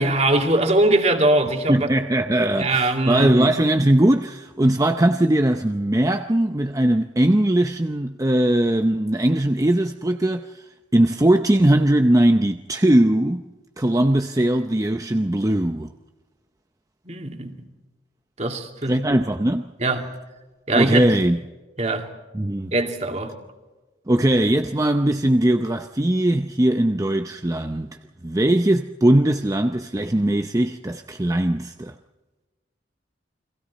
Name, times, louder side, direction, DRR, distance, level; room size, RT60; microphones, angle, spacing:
voice 1, 0.0-1.9 2.6-3.5 17.0-17.6 18.4-19.0 19.8-20.1 20.7-21.1 21.8-22.1 22.7-23.3, right 2 dB, 35° right, 2.5 m, -21 dB
voice 2, 1.7-10.6 10.9-13.4 13.8-15.9 18.8-19.7 20.8-21.4 22.3-22.7 24.1-28.0 28.2-31.9, right 1 dB, 20° right, 0.6 m, -20 dB
30.0 x 23.0 x 4.2 m
head